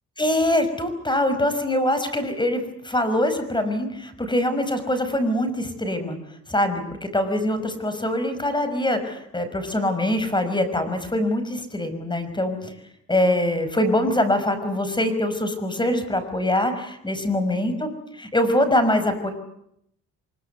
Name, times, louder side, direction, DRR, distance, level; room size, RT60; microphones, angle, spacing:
voice 1, 0.2-6.2 6.5-12.7 13.1-19.3, left 1 dB, 15° left, 9 dB, 5.5 m, -23 dB
24.5 x 22.5 x 8.3 m, 0.75 s
cardioid pair, 90°, 30 cm